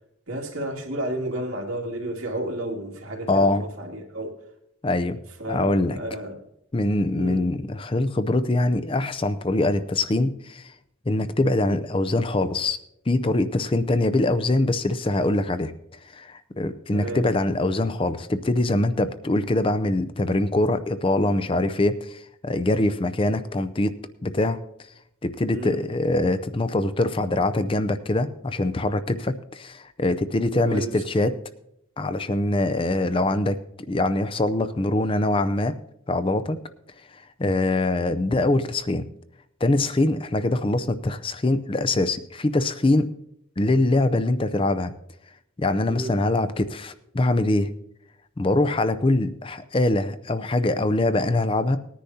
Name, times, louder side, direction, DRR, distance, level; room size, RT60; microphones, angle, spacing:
voice 1, 0.3-4.4 5.4-6.4 7.1-7.5 16.9-17.2 25.5-25.8 30.6-30.9 45.9-46.2, right 1 dB, 80° right, -1 dB, 2.4 m, -32 dB
voice 2, 3.3-3.7 4.8-5.2 5.5-6.0 6.7-10.7 11.1-12.8 13.1-15.7 16.1-23.9 24.2-24.6 25.2-31.4 32.0-33.6 33.9-35.7 36.1-36.6 37.1-39.0 39.6-43.1 43.6-44.9 45.6-47.7 48.4-51.8, left 2 dB, 25° left, 12 dB, 0.5 m, -23 dB
20.0 x 10.0 x 2.8 m, 0.79 s
head